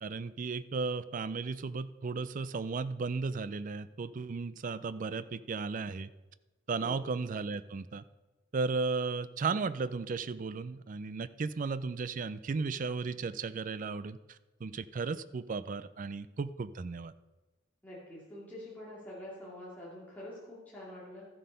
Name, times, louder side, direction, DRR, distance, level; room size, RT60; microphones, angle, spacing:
voice 1, 0.0-6.1 6.7-8.0 8.5-17.1, right 4 dB, 40° right, 15 dB, 0.4 m, -35 dB
voice 2, 17.8-21.3, left 1 dB, 10° left, -8 dB, 2.6 m, -46 dB
13.0 x 7.5 x 5.6 m, 1.2 s
head